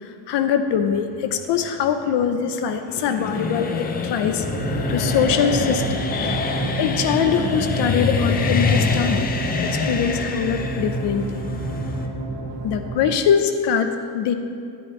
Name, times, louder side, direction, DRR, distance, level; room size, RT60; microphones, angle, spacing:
voice 1, 0.3-4.4 4.9-9.3 9.6-11.4 12.6-14.3, left 7 dB, 70° left, 8 dB, 0.8 m, -23 dB
sound 1, 0.9-12.1, left 5 dB, 25° left, 0.4 m, -26 dB
sound 2, 4.4-13.1, right 2 dB, 80° right, 2.2 m, -28 dB
11.0 x 10.5 x 3.2 m, 2.4 s
cardioid pair, 175°, 43 cm